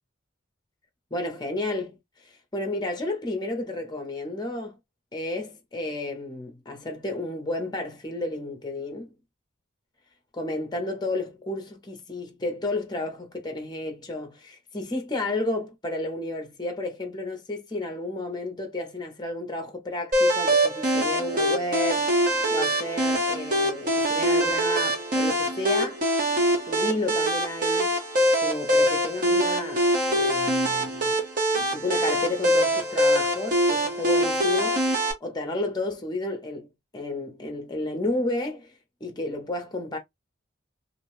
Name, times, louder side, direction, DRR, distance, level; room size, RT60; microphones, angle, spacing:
voice 1, 1.1-2.0 2.2-4.8 5.1-9.1 10.3-22.1 22.5-26.0 26.7-28.0 28.4-31.1 31.5-34.8 35.2-36.7 36.9-38.7 39.0-40.0, left 2 dB, 20° left, 0.7 m, -32 dB
sound 1, 20.1-35.1, equal, 40° right, 1.0 m, -23 dB
2.5 x 2.2 x 3.0 m
head